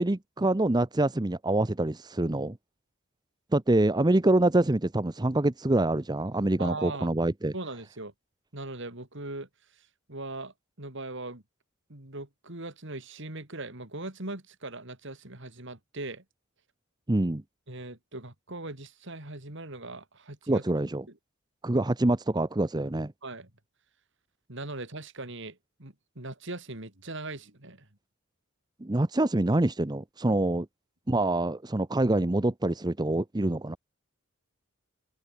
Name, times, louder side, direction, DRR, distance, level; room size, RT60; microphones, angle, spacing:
voice 1, 0.0-2.6 3.5-7.5 17.1-17.4 20.5-21.0 21.6-23.1 28.8-30.7 31.1-33.8, right 2 dB, 20° right, 0.7 m, -25 dB
voice 2, 6.6-7.1 7.5-8.1 8.5-9.5 9.8-11.4 11.9-16.2 17.7-20.6 23.2-23.5 24.5-27.9 30.3-30.4, right 2 dB, 60° right, 3.6 m, -40 dB
open air
head